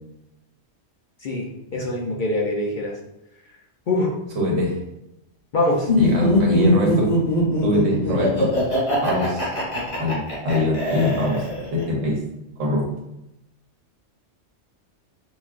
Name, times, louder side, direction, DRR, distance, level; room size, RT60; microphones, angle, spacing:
voice 1, 1.7-2.9 3.9-4.1 5.5-5.9, left 1 dB, 55° left, -1 dB, 0.6 m, -23 dB
voice 2, 4.3-4.7 6.0-7.1 7.6-8.5 9.0-9.5 10.0-11.4 11.7-12.2 12.6-12.9, left 1 dB, 85° right, -1 dB, 1.3 m, -23 dB
Laughter, 5.9-11.8, left 1 dB, 70° left, 2.0 m, -22 dB
5.7 x 2.2 x 2.4 m, 0.89 s
omnidirectional pair, 1.3 m